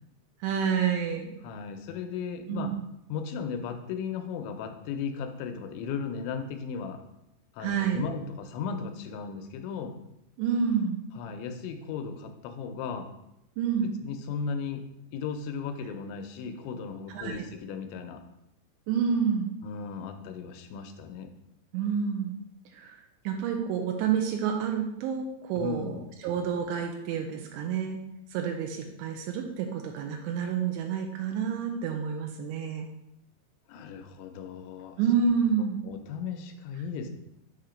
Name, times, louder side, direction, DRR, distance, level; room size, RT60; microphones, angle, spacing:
voice 1, 0.4-1.4 2.5-2.8 7.6-8.0 10.4-11.0 13.6-13.9 17.1-17.5 18.9-19.5 21.7-22.4 22.7-23.0 23.3-28.0 28.3-32.9 35.0-35.8, right 7 dB, 85° right, 3 dB, 2.8 m, -29 dB
voice 2, 1.4-2.7 3.1-7.0 7.5-9.9 11.2-13.1 14.0-14.8 15.1-18.2 19.6-21.3 25.6-26.1 33.7-35.0 35.8-37.1, left 6 dB, 90° left, 6 dB, 3.0 m, -36 dB
7.4 x 2.9 x 5.0 m, 0.83 s
omnidirectional pair, 5.1 m